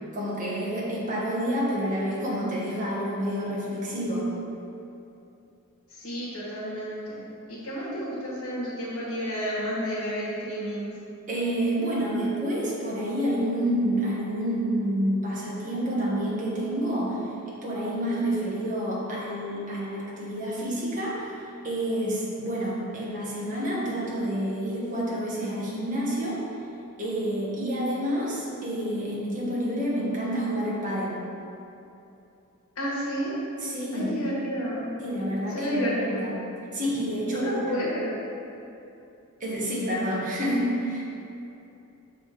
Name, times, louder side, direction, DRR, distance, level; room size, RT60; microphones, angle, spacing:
voice 1, 0.1-4.3 11.3-17.3 17.6-21.4 21.6-26.4 27.0-31.2 33.6-34.1 35.0-36.3 36.7-37.8 39.4-41.0, equal, 35° right, -6 dB, 1.3 m, -28 dB
voice 2, 5.9-7.2 7.5-10.9 32.7-33.4 33.9-34.9 35.5-36.3 37.3-38.2, equal, 85° left, -9 dB, 1.5 m, -31 dB
6.5 x 3.6 x 5.0 m, 2.8 s
head